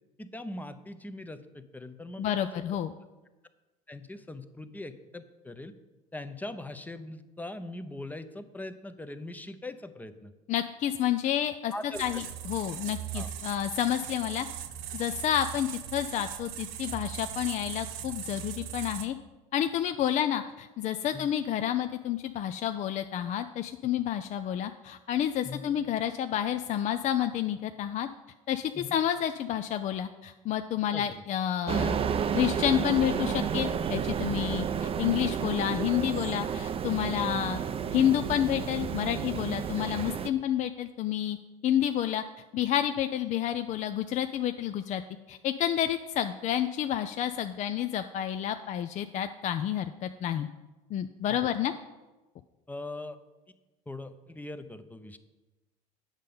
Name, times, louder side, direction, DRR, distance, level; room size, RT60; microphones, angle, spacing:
voice 1, 0.2-2.6 3.9-5.7 6.1-10.3 11.7-12.0 13.1-13.3 21.1-21.3 25.4-25.6 28.7-29.0 30.9-31.1 51.3-51.5 52.7-53.2 53.9-55.2, left 2 dB, 10° left, 10 dB, 0.7 m, -41 dB
voice 2, 2.2-2.9 10.5-11.7 12.0-14.5 14.9-19.1 19.5-28.1 28.5-32.0 32.3-37.6 37.9-41.4 41.6-42.2 42.5-45.0 45.3-50.5 50.9-51.7, left 10 dB, 40° left, 9 dB, 0.4 m, -29 dB
sound 1, 11.9-19.1, right 10 dB, 70° right, 0.8 m, -39 dB
sound 2, 31.7-40.3, right 7 dB, 30° right, 0.5 m, -31 dB
8.9 x 6.5 x 5.3 m, 1.1 s
hypercardioid pair, 75°, 18 cm